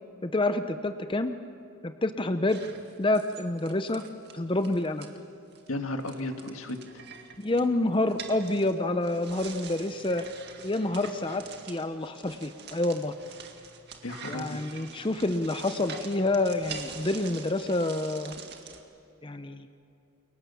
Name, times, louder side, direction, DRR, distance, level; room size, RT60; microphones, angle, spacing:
voice 1, 0.2-1.3 1.8-2.6 3.0-4.0 4.3-5.1 7.4-10.2 10.6-13.1 14.3-18.3 19.2-19.7, left 2 dB, 25° left, 9 dB, 0.7 m, -28 dB
sound 1, 2.5-5.1 5.5-5.7 6.0-18.8, right 6 dB, 50° right, 2.0 m, -45 dB
voice 2, 5.7-6.8 14.0-14.7, left 1 dB, 85° left, 5 dB, 1.9 m, -34 dB
29.0 x 23.0 x 7.0 m, 2.7 s
head